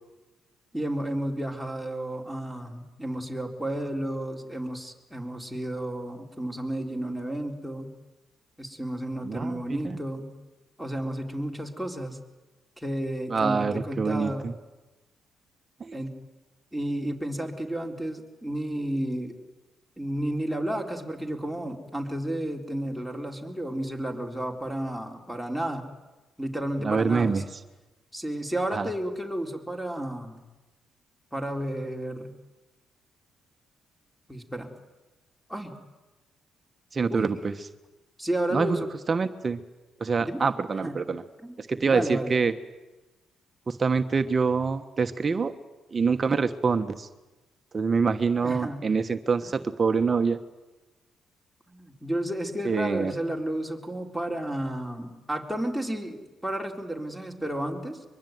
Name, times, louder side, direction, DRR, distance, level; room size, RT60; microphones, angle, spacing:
voice 1, 0.7-7.9 8.6-10.3 10.8-12.2 12.8-14.5 15.9-16.1 16.7-19.4 20.0-25.9 26.4-27.5 28.1-30.4 31.3-32.3 34.3-34.7 35.5-35.8 37.1-37.4 38.2-38.9 40.2-40.4 40.8-41.0 41.4-41.6 41.8-42.4 48.4-48.8 49.4-49.6 51.7-58.0, right 1 dB, ahead, 3 dB, 4.1 m, -32 dB
voice 2, 13.3-14.5 15.8-16.0 26.8-27.4 28.7-28.9 36.9-37.6 38.5-38.8 39.1-39.6 40.0-41.2 41.6-42.5 43.7-45.5 45.9-47.1 47.7-50.4 52.6-53.1, right 5 dB, 35° right, 9 dB, 1.2 m, -25 dB
23.5 x 22.5 x 9.4 m, 1.1 s
cardioid pair, 90°, 0 cm